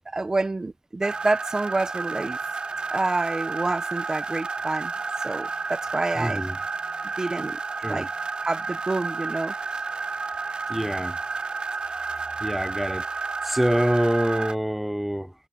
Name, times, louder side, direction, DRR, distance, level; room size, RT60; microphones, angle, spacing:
voice 1, 0.1-2.4 2.9-4.9 5.2-6.4 7.2-7.6 7.9-8.1 8.4-9.5, right 2 dB, 30° right, 1.1 m, -28 dB
sound 1, 1.0-14.6, right 4 dB, 50° right, 4.5 m, -31 dB
voice 2, 6.2-6.6 7.8-8.1 10.7-11.2 12.4-13.1 13.4-15.3, equal, 5° right, 0.9 m, -25 dB
wide cardioid pair, 85°, 2 cm